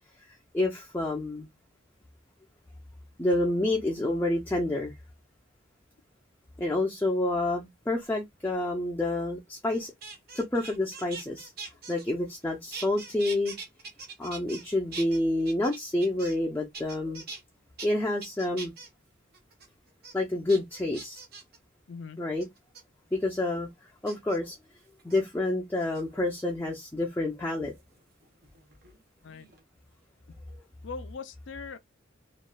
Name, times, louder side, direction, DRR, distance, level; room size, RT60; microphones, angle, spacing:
voice 1, 0.5-1.5 3.2-4.9 6.6-9.9 10.3-11.5 11.9-13.5 14.2-17.2 17.8-18.7 20.1-21.2 22.2-22.5 23.1-23.7 24.0-24.6 25.0-27.7 30.5-30.6, left 2 dB, 10° left, 0.5 m, -28 dB
sound 1, 9.7-12.4 12.7-14.6 14.9-16.5 16.7-17.4 17.8-17.9 18.2-18.9 19.3-19.7 20.0-20.1 20.5-21.6 22.4-22.8 24.1-24.4 25.0-25.2 25.8-26.4 27.8-29.0 29.2-29.6, right 4 dB, 50° right, 1.0 m, -43 dB
voice 2, 21.9-22.2 29.2-29.5 30.8-31.8, left 5 dB, 65° left, 0.5 m, -41 dB
3.0 x 2.5 x 2.2 m
head